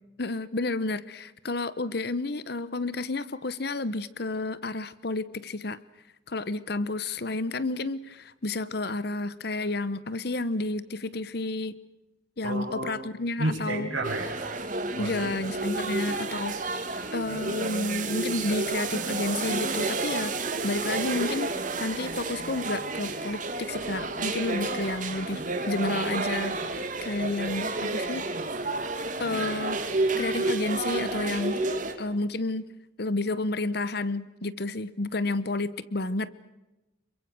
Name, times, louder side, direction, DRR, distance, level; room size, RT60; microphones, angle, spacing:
voice 1, 0.2-5.8 6.3-11.8 12.4-13.9 15.0-16.8 17.1-21.5 21.8-25.4 25.7-28.2 29.2-29.8 30.2-32.7 33.0-36.3, left 2 dB, 55° left, 17 dB, 0.9 m, -31 dB
voice 2, 12.4-13.1 13.4-14.6 14.9-15.1, right 2 dB, 85° right, -2 dB, 4.5 m, -31 dB
sound 1, 14.0-31.9, right 3 dB, 40° right, 2.6 m, -31 dB
27.5 x 23.5 x 6.2 m, 1.0 s
head